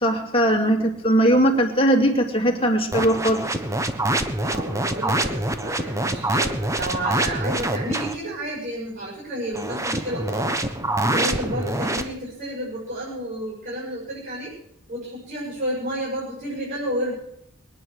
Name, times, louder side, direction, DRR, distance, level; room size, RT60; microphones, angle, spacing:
voice 1, 0.0-3.4, right 1 dB, 25° left, 1 dB, 2.6 m, -19 dB
sound 1, 2.9-8.2 9.5-12.0, right 1 dB, 15° right, 1.1 m, -25 dB
voice 2, 4.4-10.5 11.0-14.5 14.9-17.1, right 1 dB, 45° right, -6 dB, 6.2 m, -31 dB
22.0 x 9.7 x 6.4 m, 0.73 s
head